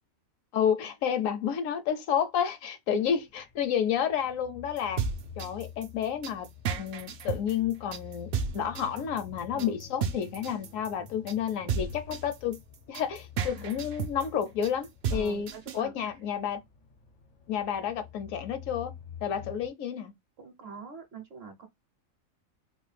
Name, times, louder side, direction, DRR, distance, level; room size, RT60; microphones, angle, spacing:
voice 1, 0.5-5.0 5.4-6.5 6.8-12.6 12.9-16.6 17.5-18.9 19.2-20.1, left 8 dB, 75° left, 0.9 m, -30 dB
sound 1, 3.0-19.7, left 7 dB, 55° left, 0.5 m, -48 dB
sound 2, 4.8-15.8, right 6 dB, 70° right, 0.5 m, -33 dB
voice 2, 15.1-16.2 19.4-19.5 20.4-21.7, right 5 dB, 55° right, 0.8 m, -44 dB
3.8 x 2.2 x 3.2 m
omnidirectional pair, 1.5 m